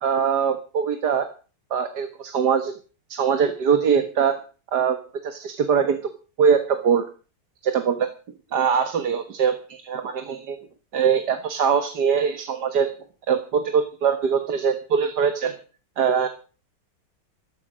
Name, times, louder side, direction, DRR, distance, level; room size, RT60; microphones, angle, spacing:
voice 1, 0.0-1.3 1.7-2.7 3.1-4.4 4.7-5.0 5.2-6.0 6.4-7.1 7.6-8.1 8.5-10.6 10.9-12.9 13.3-15.6 16.0-16.3, right 6 dB, 65° right, 8 dB, 2.0 m, -22 dB
14.0 x 13.5 x 6.3 m, 0.37 s
omnidirectional pair, 2.0 m